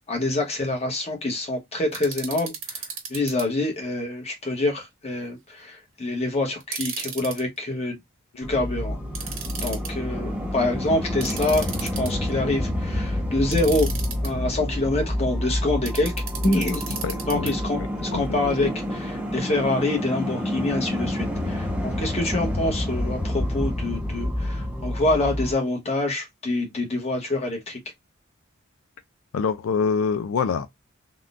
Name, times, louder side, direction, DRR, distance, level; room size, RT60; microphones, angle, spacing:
voice 1, 0.1-2.8 3.1-8.0 8.4-9.0 9.6-13.9 14.2-16.1 16.4-17.0 17.3-27.8, left 2 dB, 30° left, 1.0 m, -26 dB
sound 1, 1.9-3.4 6.6-7.4 9.1-9.9 11.2-12.3 13.5-14.3 15.9-17.5, right 6 dB, 85° right, 1.2 m, -34 dB
sound 2, 8.4-25.5, left 1 dB, 5° right, 0.5 m, -28 dB
voice 2, 16.9-17.5 18.1-18.4 29.3-30.7, left 5 dB, 85° left, 0.4 m, -25 dB
3.6 x 2.2 x 2.4 m
head